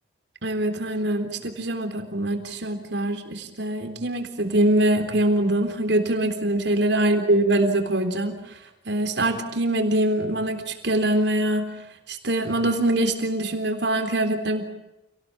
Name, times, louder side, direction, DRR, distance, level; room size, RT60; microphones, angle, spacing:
voice 1, 0.4-8.6 8.9-11.7 12.1-14.6, right 1 dB, 65° right, 6 dB, 3.7 m, -23 dB
28.5 x 19.0 x 8.7 m, 0.89 s
head